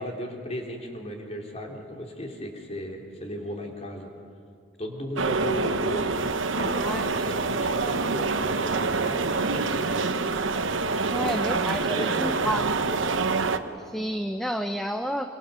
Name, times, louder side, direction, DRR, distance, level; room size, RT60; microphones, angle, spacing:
voice 1, 0.0-4.1 4.8-6.1 6.5-10.2 11.1-11.4 11.9-13.0, equal, 35° left, 1 dB, 3.3 m, -36 dB
sound 1, 5.2-13.6, right 4 dB, 85° right, 1.1 m, -26 dB
voice 2, 11.1-12.6 13.9-15.4, equal, ahead, 6 dB, 0.7 m, -30 dB
25.5 x 25.0 x 7.0 m, 2.4 s
head